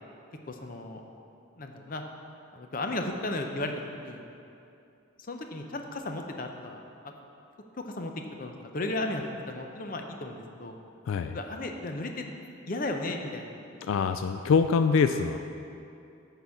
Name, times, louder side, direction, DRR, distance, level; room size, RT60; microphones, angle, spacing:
voice 1, 0.5-1.0 1.6-2.0 2.5-4.2 5.3-6.8 7.9-8.1 8.4-10.8 11.3-12.2 12.7-13.5, left 2 dB, 45° left, 4 dB, 0.6 m, -34 dB
voice 2, 11.1-11.4 13.8-15.4, left 5 dB, 80° left, 9 dB, 0.3 m, -24 dB
9.7 x 4.0 x 7.1 m, 2.6 s
head